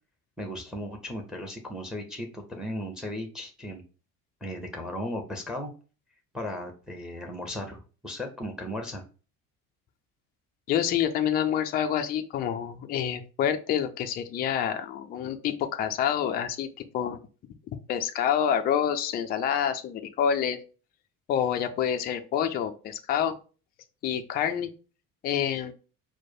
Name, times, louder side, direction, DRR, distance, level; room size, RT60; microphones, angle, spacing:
voice 1, 0.4-3.8 4.4-5.7 6.3-9.0, left 1 dB, ahead, 5 dB, 0.8 m, -36 dB
voice 2, 10.7-17.2 17.9-20.6 21.3-23.3 24.0-24.7 25.2-25.7, left 9 dB, 20° left, 7 dB, 0.4 m, -27 dB
4.4 x 2.2 x 4.3 m, 0.35 s
figure-of-eight pair, 60°, 46 cm